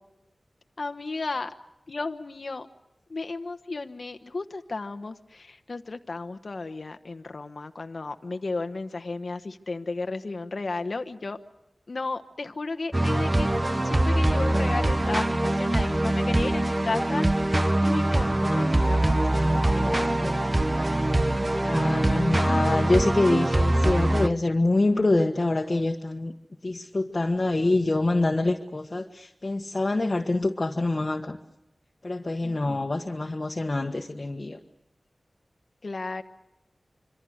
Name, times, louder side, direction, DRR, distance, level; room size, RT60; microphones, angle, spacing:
voice 1, 0.8-1.5 1.9-2.7 3.1-11.4 11.9-13.5 13.8-17.5 17.8-20.4 32.4-32.8 35.8-36.2, left 3 dB, 65° left, 8 dB, 1.1 m, -34 dB
sound 1, 12.9-24.3, right 1 dB, 30° right, 1.0 m, -23 dB
voice 2, 21.6-26.3 26.6-31.4 32.0-34.6, left 2 dB, 45° left, 2 dB, 1.4 m, -25 dB
26.5 x 24.0 x 6.5 m, 0.93 s
wide cardioid pair, 65°, 0 cm